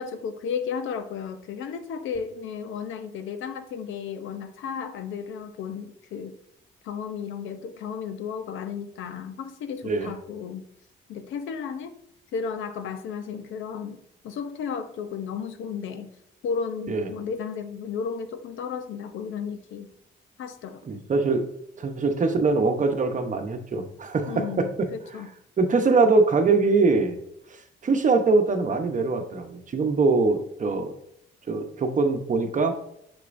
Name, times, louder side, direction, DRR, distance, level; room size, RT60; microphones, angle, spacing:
voice 1, 0.0-6.3 6.8-10.6 11.1-11.9 12.3-16.1 16.4-19.9 20.4-21.0 24.3-25.3, left 6 dB, 80° left, 9 dB, 0.7 m, -34 dB
voice 2, 20.9-21.5 21.8-24.9 25.6-27.2 27.8-30.9 31.5-32.7, right 3 dB, 40° right, 6 dB, 0.9 m, -23 dB
6.5 x 6.1 x 2.6 m, 0.74 s
cardioid pair, 90°, 20 cm